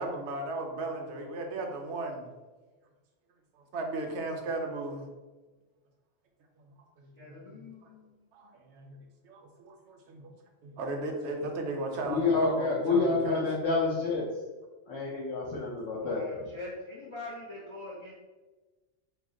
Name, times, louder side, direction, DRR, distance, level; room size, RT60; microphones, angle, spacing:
voice 1, 0.0-2.3 3.7-5.1 6.7-7.7 8.3-9.0 9.2-10.3 10.6-13.4 15.5-15.7, right 2 dB, 70° right, 2 dB, 0.8 m, -36 dB
voice 2, 7.2-8.2 16.0-18.1, left 2 dB, 45° left, -6 dB, 0.3 m, -43 dB
voice 3, 12.0-14.4 14.9-16.3, left 3 dB, 80° left, -7 dB, 1.0 m, -28 dB
2.8 x 2.0 x 3.6 m, 1.2 s
omnidirectional pair, 1.3 m